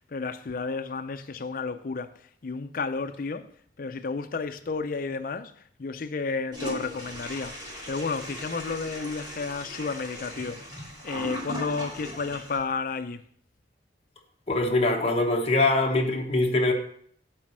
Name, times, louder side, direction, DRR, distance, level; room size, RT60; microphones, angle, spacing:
voice 1, 0.1-2.1 2.4-3.5 3.8-5.5 5.8-7.5 7.9-10.6 11.0-13.2, left 4 dB, 50° left, 0.5 m, -31 dB
Toilet flush, 6.5-12.6, left 1 dB, 20° right, 2.8 m, -38 dB
voice 2, 14.5-16.7, left 2 dB, 35° left, 1.1 m, -23 dB
7.7 x 4.1 x 6.2 m
head